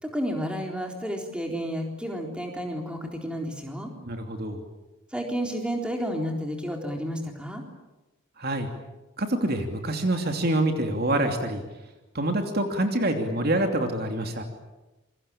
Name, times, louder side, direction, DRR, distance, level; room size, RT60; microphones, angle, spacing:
voice 1, 0.0-3.9 5.1-7.6, equal, 5° right, 2 dB, 3.8 m, -31 dB
voice 2, 4.0-4.6 8.4-8.7 9.2-11.6 12.1-14.4, right 1 dB, 45° right, 5 dB, 2.9 m, -26 dB
27.5 x 23.5 x 8.7 m, 1.1 s
head